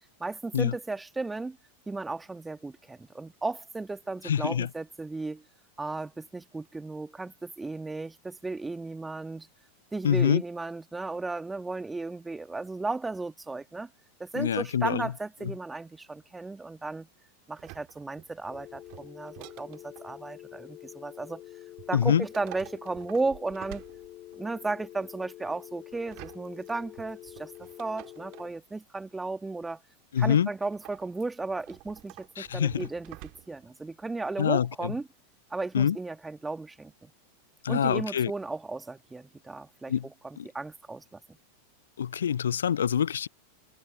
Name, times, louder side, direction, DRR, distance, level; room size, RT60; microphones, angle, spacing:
voice 1, 0.2-1.6 1.9-5.4 5.8-9.5 9.9-13.9 14.2-17.1 17.5-21.4 21.9-23.8 24.4-29.8 30.2-35.0 35.5-37.1 37.7-39.9 40.2-41.2, right 3 dB, 10° right, 1.6 m, -35 dB
voice 2, 4.2-4.7 10.0-10.4 14.4-15.1 21.9-22.2 30.1-30.5 32.4-32.9 34.4-34.9 35.7-36.0 37.6-38.3 39.9-40.1 40.4-40.5 42.0-43.3, left 8 dB, 65° left, 0.6 m, -25 dB
sound 1, 17.5-20.2 21.8-24.5 25.9-28.6 30.6-33.7 34.0-34.1, right 27 dB, 40° right, 1.9 m, -49 dB
sound 2, 18.5-28.5, left 15 dB, 35° left, 0.9 m, -47 dB
figure-of-eight pair, 90°, 0 cm